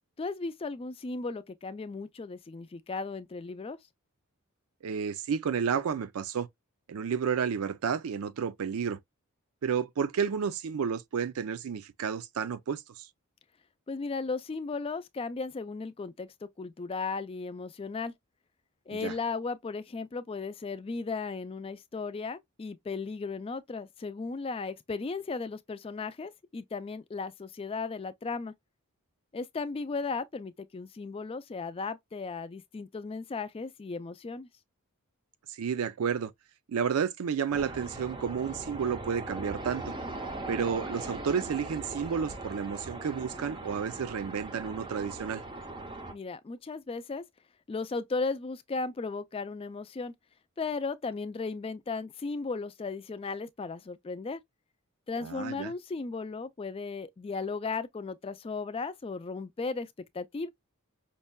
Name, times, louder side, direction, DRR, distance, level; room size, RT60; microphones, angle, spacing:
voice 1, 0.2-3.8 13.9-18.1 18.9-28.5 29.3-34.5 46.1-47.2 47.7-50.1 50.6-54.4 55.1-60.5, left 4 dB, 25° left, 0.3 m, -36 dB
voice 2, 4.8-6.5 6.9-9.0 9.6-13.1 18.9-19.1 35.5-36.3 36.7-39.9 40.5-45.4 55.2-55.7, right 6 dB, 80° right, 0.4 m, -31 dB
sound 1, 37.5-46.1, right 2 dB, 20° right, 0.6 m, -40 dB
5.3 x 2.1 x 2.2 m
head